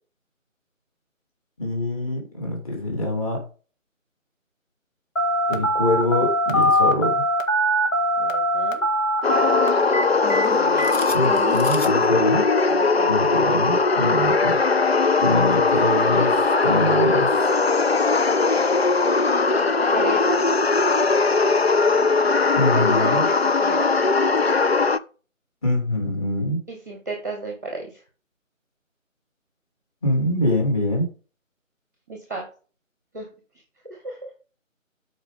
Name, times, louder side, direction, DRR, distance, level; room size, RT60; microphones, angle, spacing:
voice 1, 1.6-3.4 5.5-7.2 11.1-12.5 13.1-14.6 15.2-17.5 22.6-23.3 25.6-26.6 30.0-31.1, left 1 dB, 25° left, 0 dB, 2.8 m, -24 dB
Telephone, 5.2-12.0, equal, 70° left, 1.9 m, -22 dB
voice 2, 8.2-8.8 10.5-10.9 12.7-13.3 19.9-20.5 22.7-23.9 26.7-28.0 32.1-32.4 33.1-33.3 33.8-34.2, right 2 dB, 15° right, 1 dB, 1.0 m, -32 dB
sound 1, 9.2-25.0, left 4 dB, 50° left, 0.5 m, -20 dB
12.5 x 4.9 x 3.5 m, 0.37 s
figure-of-eight pair, 160°, 40 cm